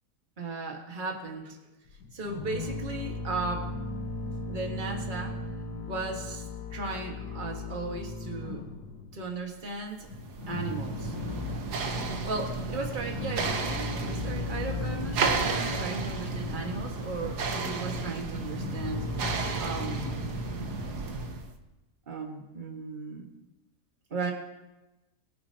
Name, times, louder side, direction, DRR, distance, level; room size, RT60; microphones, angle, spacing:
voice 1, 0.4-1.6 2.1-3.7 4.5-5.4 5.8-8.6 9.1-10.1 10.5-11.1 12.2-19.1 19.6-20.3 22.1-23.3 24.1-24.3, right 3 dB, 30° right, 1 dB, 1.7 m, -36 dB
sound 1, 1.9-9.3 9.6-9.7 10.1-12.0 12.5-21.0, left 2 dB, 80° left, 1.8 m, -37 dB
sound 2, 10.0-21.5, right 3 dB, 75° right, 1.6 m, -33 dB
22.5 x 9.9 x 2.9 m, 1.0 s
omnidirectional pair, 1.7 m